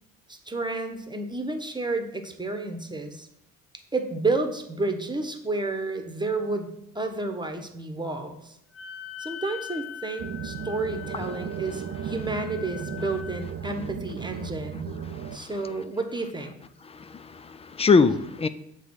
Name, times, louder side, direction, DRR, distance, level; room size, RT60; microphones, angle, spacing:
voice 1, 0.3-3.3 3.9-6.7 6.9-8.6 9.2-15.0 15.3-16.5, right 3 dB, 10° right, 5 dB, 1.1 m, -31 dB
Wind instrument woodwind instrument, 8.7-13.4, left 9 dB, 50° left, 1.3 m, -41 dB
sound 1, 10.2-15.4, right 8 dB, 30° right, 0.6 m, -35 dB
voice 2, 15.1-15.5 16.8-18.5, left 4 dB, 15° left, 13 dB, 0.4 m, -23 dB
7.2 x 3.5 x 6.2 m, 0.80 s
hypercardioid pair, 55°, 45 cm